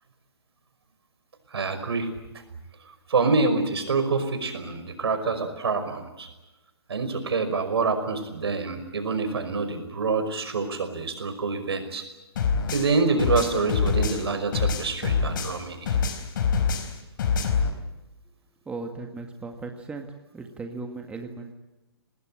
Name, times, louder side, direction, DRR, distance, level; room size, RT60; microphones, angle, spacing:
voice 1, 1.5-2.1 3.1-6.3 6.9-12.0 12.7-16.0, right 4 dB, 75° right, 8 dB, 5.5 m, -26 dB
sound 1, 12.4-15.6 15.9-17.7, left 6 dB, 50° left, 4.1 m, -25 dB
voice 2, 18.7-20.1 20.3-21.5, right 3 dB, 10° right, 4 dB, 1.8 m, -37 dB
25.5 x 19.5 x 8.9 m, 1.0 s
hypercardioid pair, 140°, 14 cm